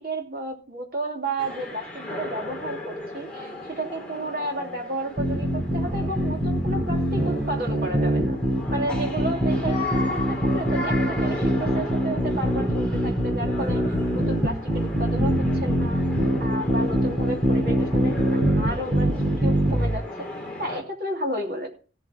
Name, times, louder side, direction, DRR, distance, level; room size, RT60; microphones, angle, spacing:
voice 1, 0.0-8.4 8.7-13.8 14.1-16.0 16.4-20.3 20.6-21.7, right 1 dB, 55° right, 1 dB, 2.8 m, -32 dB
sound 1, 1.4-20.8, left 1 dB, 5° left, 2.9 m, -36 dB
sound 2, 5.2-19.9, equal, 20° right, 6.2 m, -23 dB
16.0 x 7.9 x 4.3 m, 0.37 s
head